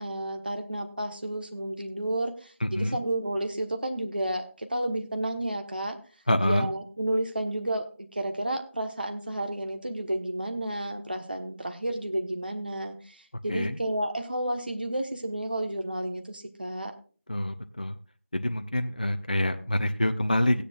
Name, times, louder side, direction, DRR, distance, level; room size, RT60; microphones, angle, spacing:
voice 1, 0.0-5.9 6.4-16.9, right 1 dB, 40° right, 5 dB, 1.3 m, -31 dB
voice 2, 2.6-3.0 6.3-6.7 13.5-13.8 17.3-18.0 18.3-20.6, left 1 dB, 35° left, 7 dB, 0.6 m, -26 dB
16.5 x 10.0 x 2.4 m, 0.39 s
figure-of-eight pair, 175°, 8 cm